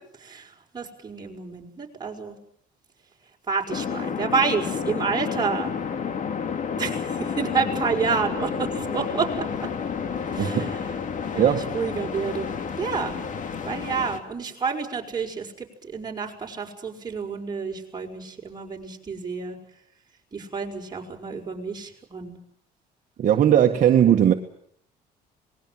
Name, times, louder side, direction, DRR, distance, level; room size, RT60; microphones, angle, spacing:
voice 1, 0.2-2.4 3.5-5.8 6.8-9.5 10.3-10.8 11.3-12.5 12.8-13.2 13.6-19.6 20.3-22.4, right 5 dB, 25° right, 6.1 m, -29 dB
sound 1, 3.7-14.2, left 6 dB, 50° left, 2.5 m, -30 dB
voice 2, 10.4-10.7 11.4-11.6 23.2-24.3, right 10 dB, 50° right, 1.8 m, -18 dB
27.0 x 21.0 x 7.8 m
cardioid pair, 110°, 17 cm